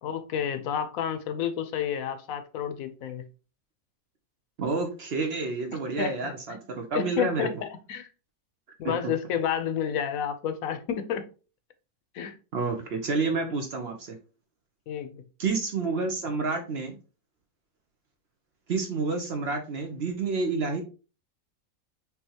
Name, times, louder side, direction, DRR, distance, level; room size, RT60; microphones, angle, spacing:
voice 1, 0.0-3.2 6.0-6.6 6.9-8.1 8.8-11.2 12.1-12.3 14.9-15.2, left 8 dB, 75° left, 10 dB, 1.1 m, -30 dB
voice 2, 4.6-7.5 8.8-9.0 12.5-14.2 15.4-17.0 18.7-20.8, right 4 dB, 55° right, 5 dB, 0.8 m, -29 dB
5.5 x 2.8 x 2.8 m, 0.34 s
omnidirectional pair, 1.5 m